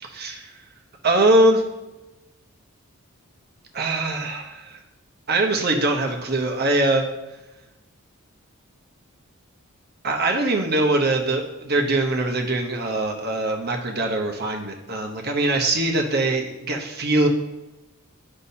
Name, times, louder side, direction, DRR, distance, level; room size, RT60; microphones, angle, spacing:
voice 1, 0.0-0.6 1.0-1.6 3.7-4.8 5.3-7.1 10.0-17.3, right 2 dB, 45° right, 2 dB, 0.9 m, -22 dB
9.9 x 5.4 x 2.8 m, 1.0 s
head